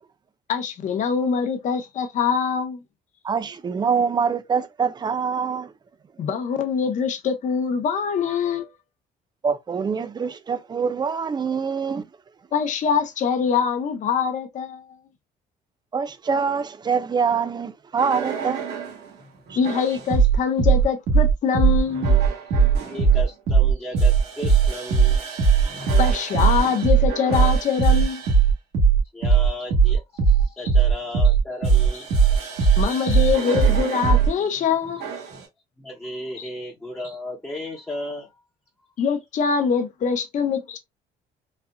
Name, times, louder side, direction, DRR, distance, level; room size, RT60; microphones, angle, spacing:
voice 1, 0.5-2.8 6.2-8.7 12.5-14.8 19.6-22.2 26.0-28.2 30.6-30.7 31.9-32.0 32.8-35.1 36.4-36.5 39.0-40.8, left 6 dB, 45° left, 0.7 m, -24 dB
voice 2, 3.2-5.7 9.4-12.0 15.9-18.7 19.5-19.6, right 6 dB, 25° right, 0.5 m, -24 dB
sound 1, 18.0-19.0 19.6-34.3 35.0-35.4, right 6 dB, 75° right, 1.3 m, -19 dB
voice 3, 22.8-25.2 25.6-25.8 29.1-32.1 35.8-38.3, left 1 dB, 10° left, 0.9 m, -35 dB
4.1 x 2.4 x 2.2 m
cardioid pair, 110°, 17 cm